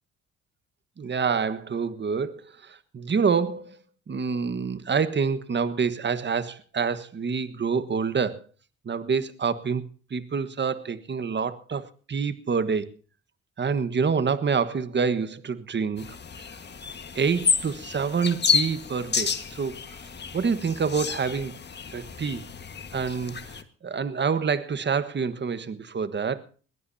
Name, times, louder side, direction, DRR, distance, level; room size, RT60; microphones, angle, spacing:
voice 1, 1.0-3.8 4.1-8.4 8.8-9.8 10.1-12.9 13.6-16.1 17.1-19.7 20.3-21.5 21.9-22.5 22.9-23.4 23.8-26.4, right 5 dB, 35° right, 1.4 m, -27 dB
sound 1, 16.0-23.6, left 6 dB, 35° left, 1.5 m, -30 dB
21.5 x 16.5 x 2.8 m
cardioid pair, 90°, 30 cm